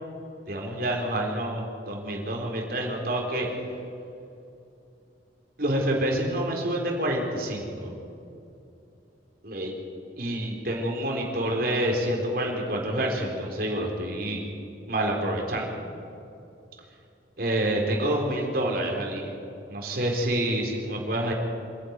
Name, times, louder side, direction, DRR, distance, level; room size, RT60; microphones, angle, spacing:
voice 1, 0.5-3.5 5.6-7.9 9.4-9.7 10.2-14.4 14.9-15.7 17.4-19.3 19.7-21.3, right 1 dB, 55° right, 0 dB, 4.1 m, -27 dB
25.5 x 12.0 x 9.6 m, 2.7 s
head